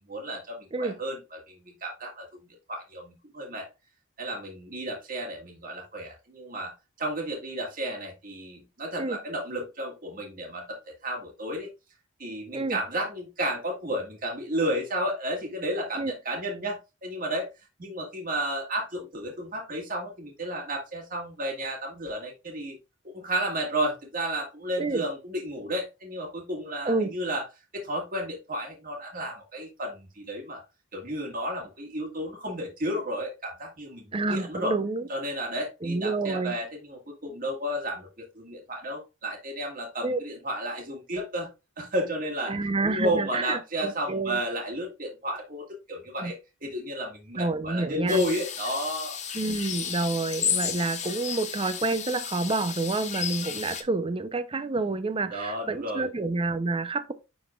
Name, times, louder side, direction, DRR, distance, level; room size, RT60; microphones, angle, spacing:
voice 1, 0.1-3.7 4.2-6.7 7.0-10.8 11.0-11.7 12.2-17.5 17.8-22.8 23.0-27.4 27.7-30.6 30.9-34.7 35.1-41.5 41.8-42.6 42.8-49.2 55.3-56.1, equal, 45° right, 1.8 m, -32 dB
voice 2, 34.1-35.1 35.8-36.6 40.0-40.2 42.5-44.4 46.2-46.3 47.4-48.2 49.3-57.1, right 3 dB, 25° right, 0.6 m, -28 dB
sound 1, 48.1-53.8, left 8 dB, 35° left, 0.9 m, -33 dB
10.0 x 4.0 x 2.3 m
head